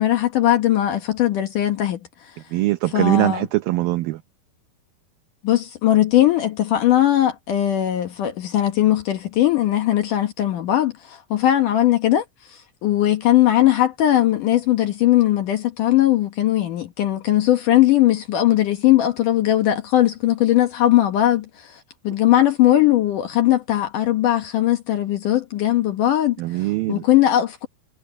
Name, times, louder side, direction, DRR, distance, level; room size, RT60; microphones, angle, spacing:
voice 1, 0.0-2.0 2.9-3.5 5.4-12.2 12.8-26.4 26.9-27.7, left 13 dB, 65° left, 2.2 m, -19 dB
voice 2, 2.5-4.2 26.4-27.0, right 18 dB, 85° right, 2.0 m, -21 dB
omnidirectional pair, 5.0 m